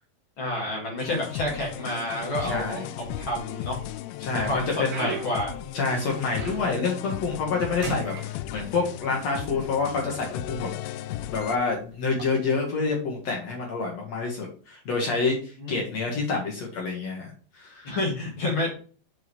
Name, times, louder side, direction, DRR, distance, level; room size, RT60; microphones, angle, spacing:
voice 1, 0.4-3.8 4.3-4.7 5.0-5.5 15.6-15.8 17.8-18.7, left 1 dB, 40° left, -2 dB, 1.9 m, -29 dB
sound 1, 1.0-11.6, left 12 dB, 90° left, 2.9 m, -36 dB
voice 2, 2.4-2.9 4.2-5.1 5.7-10.7 11.3-18.0, left 4 dB, 65° left, -1 dB, 1.7 m, -28 dB
sound 2, 2.9-3.7 4.2-6.9 7.3-7.6 7.8-9.1 9.9-10.0 10.7-10.9 12.0-12.2, right 5 dB, 60° right, 4.1 m, -37 dB
7.6 x 4.8 x 3.1 m, 0.40 s
omnidirectional pair, 5.2 m